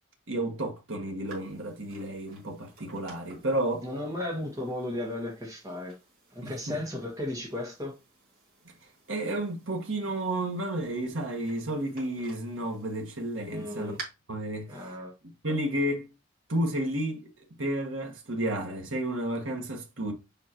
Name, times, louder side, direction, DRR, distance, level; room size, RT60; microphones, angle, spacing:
voice 1, 0.3-3.9 6.4-6.8 8.6-8.7 9.1-13.9 14.3-14.8 15.4-16.1 16.5-17.3 17.6-20.1, right 1 dB, 75° right, 1.5 m, -31 dB
sound 1, 1.3-14.0, right 3 dB, 45° right, 2.7 m, -52 dB
voice 2, 3.8-5.9 6.3-8.0 13.4-14.0 14.7-15.1, left 1 dB, 15° right, 1.9 m, -35 dB
7.4 x 5.0 x 2.9 m
head